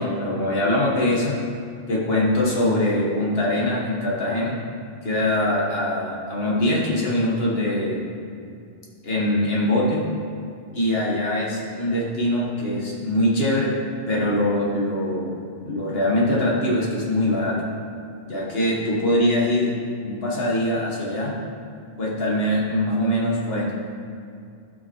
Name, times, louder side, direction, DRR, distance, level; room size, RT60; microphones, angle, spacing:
voice 1, 0.0-1.4 1.9-4.6 5.0-8.1 9.0-10.1 10.7-13.7 14.1-15.4 15.6-17.7 18.3-19.7 20.0-21.3 22.0-23.7, left 1 dB, 70° left, -4 dB, 1.7 m, -22 dB
12.0 x 5.0 x 3.1 m, 2.4 s
omnidirectional pair, 1.0 m